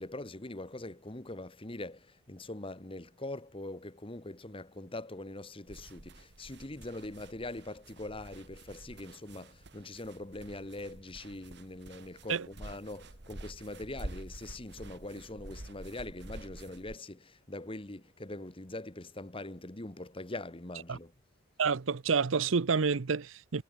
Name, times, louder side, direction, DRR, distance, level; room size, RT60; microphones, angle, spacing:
voice 1, 0.0-21.1, left 2 dB, 25° left, 1.5 m, -43 dB
sound 1, 5.7-17.0, right 1 dB, 60° right, 1.8 m, -48 dB
voice 2, 21.6-23.6, right 5 dB, 80° right, 0.7 m, -29 dB
head